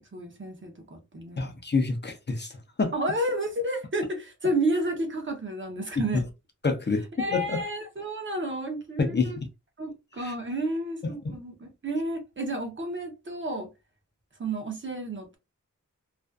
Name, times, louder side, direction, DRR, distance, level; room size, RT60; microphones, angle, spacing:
voice 1, 0.0-1.5 2.9-6.2 7.2-9.4 9.8-13.7 14.4-15.4, right 1 dB, 40° right, 0.7 m, -31 dB
voice 2, 1.4-2.5 2.8-2.9 6.6-7.0 7.3-7.6 9.0-9.5 10.2-10.3 11.0-11.4, left 4 dB, 35° left, 0.5 m, -27 dB
2.5 x 2.3 x 2.3 m
wide cardioid pair, 110°, 31 cm